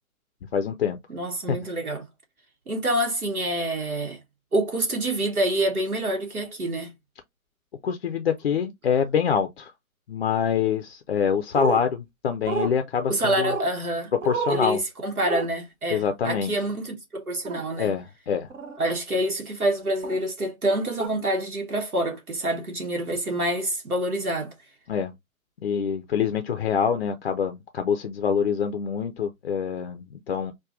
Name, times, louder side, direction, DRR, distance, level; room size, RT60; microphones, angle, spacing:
voice 1, 0.5-1.0 1.5-1.6 7.8-9.7 10.1-13.5 14.2-14.8 15.9-16.5 17.8-18.5 24.9-25.1 25.6-30.5, left 7 dB, 45° left, 0.4 m, -25 dB
voice 2, 1.1-2.0 2.7-4.2 4.5-6.9 13.1-14.1 14.5-17.9 18.8-24.5, right 1 dB, 85° right, 1.1 m, -27 dB
sound 1, 11.5-11.8 12.5-12.7 13.4-13.7 14.2-14.7 15.2-15.5 17.5-17.6 18.5-18.8 20.0-20.2 21.0-21.1, right 4 dB, 60° right, 0.7 m, -29 dB
4.6 x 2.2 x 2.4 m
figure-of-eight pair, 120°, 43 cm